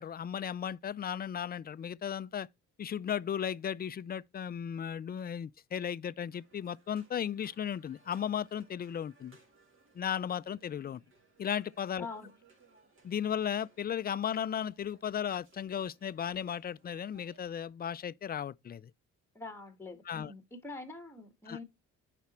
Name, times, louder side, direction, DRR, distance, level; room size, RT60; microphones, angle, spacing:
voice 1, 0.0-2.5 2.8-9.4 9.9-11.0 11.4-12.1 13.0-18.9 20.1-20.3 21.5-21.6, left 8 dB, 30° left, 0.4 m, -35 dB
sound 1, 6.3-17.4, right 3 dB, 45° right, 2.5 m, -65 dB
voice 2, 12.0-12.3 19.3-21.6, left 3 dB, 10° left, 1.5 m, -45 dB
7.0 x 5.1 x 4.3 m
cardioid pair, 90°, 30 cm